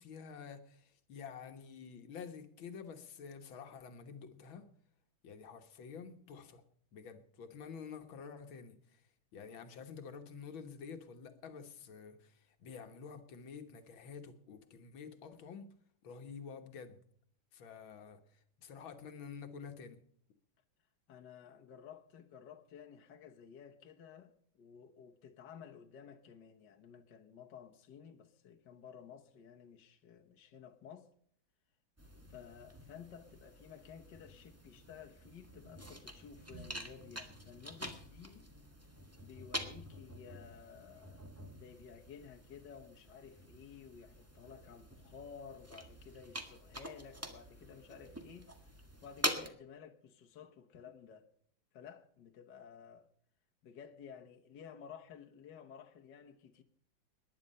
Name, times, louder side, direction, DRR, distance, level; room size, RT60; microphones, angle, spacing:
voice 1, 0.0-4.6 5.2-6.6 6.9-9.0 9.3-15.7 16.0-17.0 17.5-18.2 18.6-20.0, left 6 dB, 80° left, 2.1 m, -49 dB
voice 2, 21.1-31.1 32.3-38.5 39.2-48.8 49.0-51.3 51.7-53.1 53.6-56.6, left 7 dB, 65° left, 1.8 m, -54 dB
sound 1, 32.0-49.5, equal, 10° right, 1.4 m, -46 dB
19.0 x 10.5 x 5.4 m
omnidirectional pair, 2.2 m